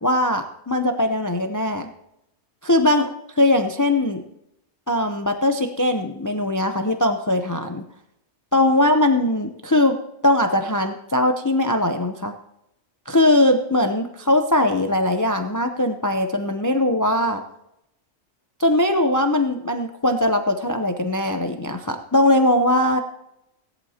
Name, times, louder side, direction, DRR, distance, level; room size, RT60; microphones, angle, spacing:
voice 1, 0.0-1.9 2.6-3.1 3.4-4.2 4.9-7.8 8.5-12.3 13.1-17.4 18.6-23.0, left 1 dB, 20° left, 6 dB, 0.5 m, -20 dB
17.5 x 11.0 x 2.9 m, 0.80 s
omnidirectional pair, 1.4 m